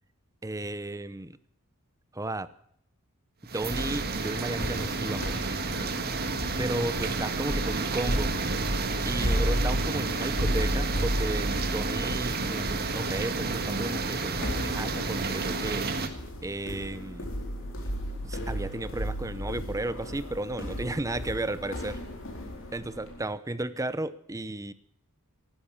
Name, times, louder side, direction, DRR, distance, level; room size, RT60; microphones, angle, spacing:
voice 1, 0.4-1.4 2.1-2.5 3.5-5.5 6.6-8.4 9.0-15.9 16.4-17.3 18.2-22.0 22.7-24.7, right 2 dB, 15° right, 14 dB, 0.7 m, -34 dB
sound 1, 3.5-16.1, right 3 dB, 45° right, 1.7 m, -31 dB
sound 2, 3.7-23.2, equal, 60° left, 4.4 m, -34 dB
15.0 x 12.5 x 7.2 m, 0.69 s
head